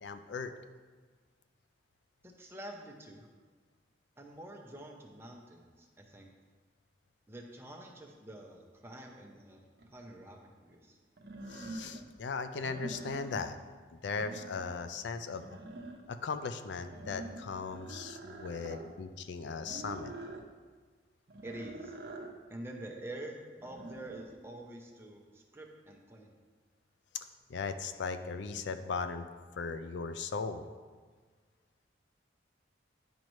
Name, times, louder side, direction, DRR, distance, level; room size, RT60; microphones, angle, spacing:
voice 1, 0.0-0.5 11.5-13.6 13.9-15.5 16.1-20.1 27.5-29.3 29.6-30.7, left 4 dB, 75° left, 9 dB, 0.4 m, -38 dB
voice 2, 2.2-3.3 4.2-6.3 7.3-11.0 21.4-22.0 22.5-26.3, right 1 dB, 15° right, 1 dB, 0.7 m, -47 dB
sound 1, 9.8-9.9 11.2-12.1 12.5-13.6 13.9-14.9 15.2-16.2 16.8-18.9 19.6-20.5 21.3-22.4 23.6-24.3, right 2 dB, 55° right, 0.7 m, -46 dB
10.5 x 5.2 x 3.1 m, 1.5 s
head